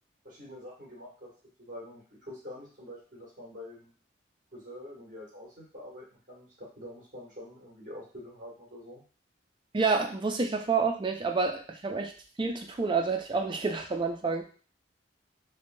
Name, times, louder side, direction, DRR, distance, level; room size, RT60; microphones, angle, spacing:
voice 1, 0.2-1.3 1.6-3.9 4.5-9.0, left 1 dB, 45° right, -4 dB, 1.3 m, -46 dB
voice 2, 9.7-12.1 12.4-14.4, right 4 dB, 25° right, 3 dB, 0.4 m, -28 dB
3.3 x 2.1 x 2.6 m, 0.39 s
head